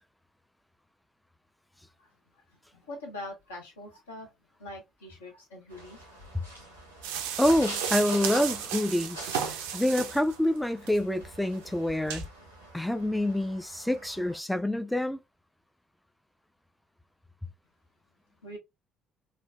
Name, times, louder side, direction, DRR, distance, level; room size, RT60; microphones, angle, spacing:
voice 1, 2.8-4.3 4.6-6.2 18.4-18.6, left 1 dB, 75° left, 0.9 m, -43 dB
sound 1, 5.7-14.4, right 1 dB, 90° right, 0.7 m, -44 dB
sound 2, 7.0-10.4 10.8-11.0 11.5-11.6 12.1-12.2, right 8 dB, 70° right, 0.4 m, -34 dB
voice 2, 7.4-12.3 12.7-15.2, left 1 dB, 5° left, 0.3 m, -27 dB
3.2 x 2.1 x 2.3 m
figure-of-eight pair, 50°, 0 cm